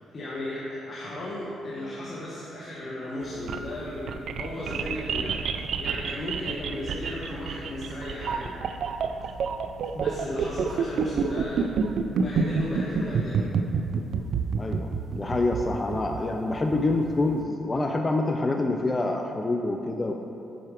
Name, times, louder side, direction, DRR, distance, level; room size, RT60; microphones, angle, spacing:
voice 1, 0.1-8.5 8.8-9.0 9.9-11.7 12.1-13.5, left 1 dB, 40° left, -5 dB, 1.1 m, -35 dB
sound 1, 3.2-17.3, right 5 dB, 65° right, 0.4 m, -28 dB
voice 2, 14.6-20.1, left 2 dB, 25° left, 4 dB, 0.4 m, -26 dB
7.6 x 4.6 x 4.8 m, 3.0 s
cardioid pair, 90°, 0 cm